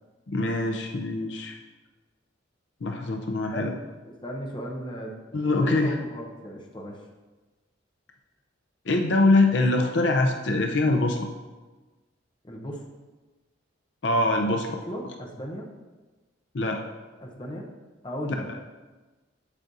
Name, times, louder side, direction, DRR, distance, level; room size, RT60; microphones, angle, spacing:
voice 1, 0.3-1.6 2.8-3.7 5.3-6.0 8.9-11.3 14.0-14.8 16.5-16.8, left 2 dB, 70° left, 3 dB, 0.6 m, -23 dB
voice 2, 4.1-5.1 5.6-7.1 12.4-12.8 14.9-15.7 17.2-17.7 18.0-18.6, equal, 25° left, 0 dB, 0.9 m, -36 dB
8.3 x 7.7 x 2.7 m, 1.2 s
head